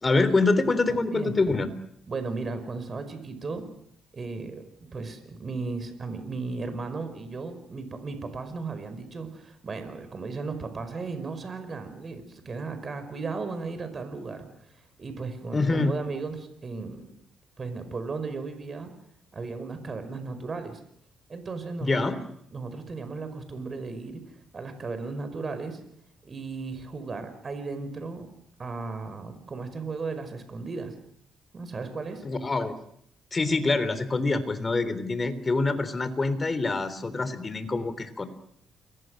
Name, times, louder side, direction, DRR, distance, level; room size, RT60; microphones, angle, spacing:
voice 1, 0.0-1.7 15.5-15.9 21.8-22.2 32.2-32.8 33.3-38.3, left 3 dB, 30° left, 12 dB, 3.4 m, -25 dB
voice 2, 0.9-1.3 2.1-3.6 4.1-4.6 4.9-14.5 15.0-17.1 17.6-18.9 19.3-20.8 21.3-22.1 22.5-24.2 24.5-25.8 26.2-28.3 28.6-30.9 31.5-32.2, right 4 dB, 40° right, 9 dB, 5.2 m, -35 dB
29.0 x 22.0 x 6.5 m, 0.72 s
cardioid pair, 90°, 0 cm